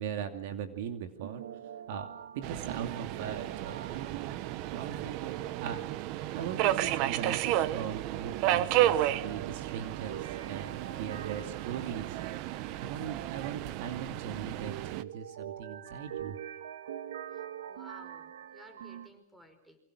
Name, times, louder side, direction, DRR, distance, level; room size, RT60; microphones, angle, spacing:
voice 1, 0.0-1.4 1.9-4.3 4.7-5.9 6.3-12.2 12.8-16.4, right 8 dB, 60° right, 7 dB, 2.7 m, -40 dB
sound 1, 1.2-6.5 6.8-6.9 9.2-13.3 14.6-19.1, right 10 dB, 85° right, 2.0 m, -45 dB
Subway metro underground, 2.4-15.0, right 13 dB, 45° right, 1.2 m, -32 dB
voice 2, 17.3-19.8, equal, 5° right, 9 dB, 5.4 m, -55 dB
28.5 x 25.0 x 6.4 m, 0.66 s
supercardioid pair, 145°, 0 cm